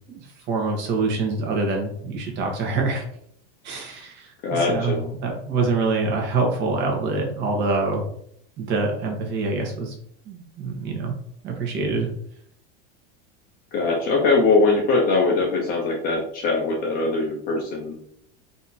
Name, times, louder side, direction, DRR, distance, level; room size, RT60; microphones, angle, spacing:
voice 1, 0.1-3.0 3.6-4.3 4.7-4.9 5.2-8.0 8.6-9.9 10.3-11.1 11.4-12.1, right 3 dB, 35° right, 1 dB, 1.3 m, -25 dB
voice 2, 4.4-5.1 13.7-18.0, left 3 dB, 30° left, -1 dB, 0.8 m, -21 dB
4.1 x 2.9 x 4.1 m, 0.67 s
supercardioid pair, 160°, 30 cm